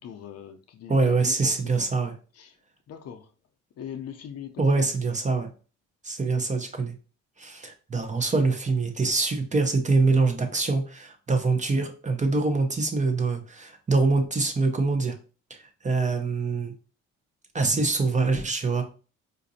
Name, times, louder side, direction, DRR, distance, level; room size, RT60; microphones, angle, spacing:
voice 1, 0.0-1.9 2.3-2.6 2.9-3.3 3.8-4.9, left 8 dB, 55° left, 0.6 m, -41 dB
voice 2, 0.9-2.1 4.6-5.5 6.0-6.9 7.4-15.1 15.8-16.7 17.5-18.8, right 3 dB, 25° right, 0.6 m, -24 dB
3.9 x 2.5 x 2.6 m
cardioid pair, 90°, 30 cm